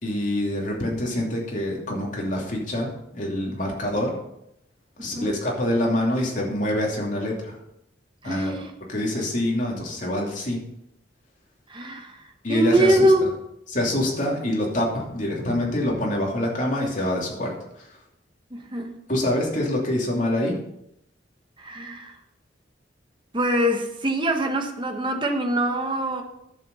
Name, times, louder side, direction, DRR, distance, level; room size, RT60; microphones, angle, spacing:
voice 1, 0.0-4.1 5.0-7.6 8.2-8.6 8.9-10.6 12.4-13.1 13.7-18.0 19.1-20.6, left 1 dB, 45° left, 2.9 m, -26 dB
voice 2, 5.0-5.3 8.2-8.7 11.7-13.3 18.5-18.9 21.6-22.2 23.3-26.2, right 1 dB, 25° right, 1.2 m, -23 dB
10.5 x 7.8 x 5.5 m
head